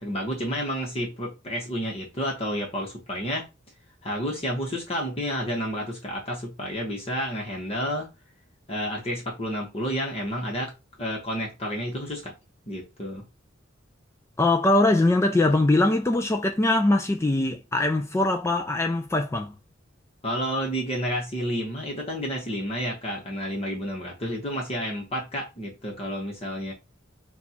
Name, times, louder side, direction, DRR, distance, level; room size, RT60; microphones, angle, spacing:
voice 1, 0.0-3.4 4.0-8.1 8.7-10.7 11.0-12.3 12.7-13.2 20.2-26.7, equal, 30° left, 1.1 m, -30 dB
voice 2, 14.4-19.5, left 2 dB, 15° left, 0.3 m, -22 dB
4.3 x 2.4 x 4.2 m
head